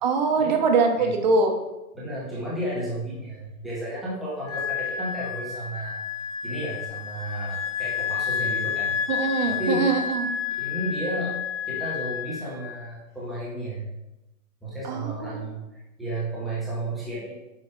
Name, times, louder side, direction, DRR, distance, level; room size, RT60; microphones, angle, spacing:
voice 1, 0.0-1.5 9.1-10.3 14.8-15.3, right 4 dB, 30° right, 4 dB, 0.9 m, -23 dB
voice 2, 1.9-6.0 6.4-8.9 9.5-9.9 10.6-11.4 11.7-13.8 14.6-17.3, right 1 dB, ahead, -10 dB, 0.3 m, -32 dB
Wind instrument woodwind instrument, 4.5-12.8, left 7 dB, 60° left, 2.5 m, -30 dB
7.6 x 5.0 x 4.5 m, 0.99 s
hypercardioid pair, 160°, 43 cm